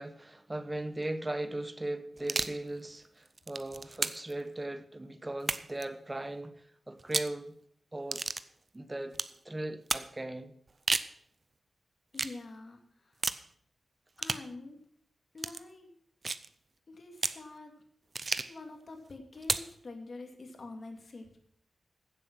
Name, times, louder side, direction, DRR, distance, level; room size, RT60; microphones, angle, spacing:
voice 1, 0.0-7.5 7.9-8.3 8.7-9.2 9.4-10.5, right 1 dB, 15° right, 0.9 m, -38 dB
sound 1, 2.2-2.6 3.3-4.3 5.4-5.8 7.0-7.4 8.1-8.5 9.1-9.4 9.9-10.1 10.7-11.1 12.1-12.4 13.2-13.5 14.2-14.5 15.4-15.6 16.2-16.5 17.2-17.4 18.1-18.6 19.4-19.7, right 3 dB, 35° right, 0.5 m, -33 dB
voice 2, 12.1-13.2 14.2-14.8 15.3-15.9 16.9-17.7 18.3-21.4, left 3 dB, 45° left, 2.2 m, -46 dB
15.5 x 7.5 x 6.0 m
wide cardioid pair, 150°, 0 cm